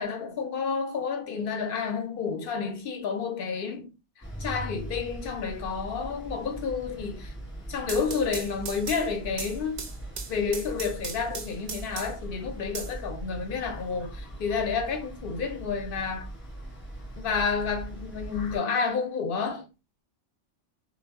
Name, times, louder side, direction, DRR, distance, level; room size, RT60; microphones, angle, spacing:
voice 1, 0.0-3.9 4.4-7.3 7.7-9.9 10.3-16.3 17.2-19.7, left 5 dB, 55° left, 0.7 m, -30 dB
sound 1, 4.2-18.6, right 1 dB, 10° left, 0.7 m, -40 dB
sound 2, 7.6-12.3 12.7-13.7, right 5 dB, 65° right, 0.4 m, -39 dB
2.0 x 2.0 x 3.4 m
omnidirectional pair, 1.3 m